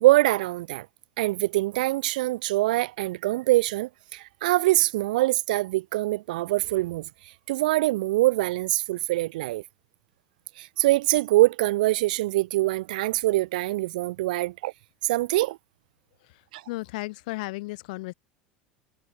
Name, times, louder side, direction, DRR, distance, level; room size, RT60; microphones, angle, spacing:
voice 1, 0.0-0.9 1.2-9.6 10.6-14.7 15.0-15.6 16.5-16.6, right 18 dB, 60° right, 0.4 m, -24 dB
voice 2, 16.7-18.1, left 22 dB, 60° left, 0.4 m, -34 dB
figure-of-eight pair, 75°, 5 cm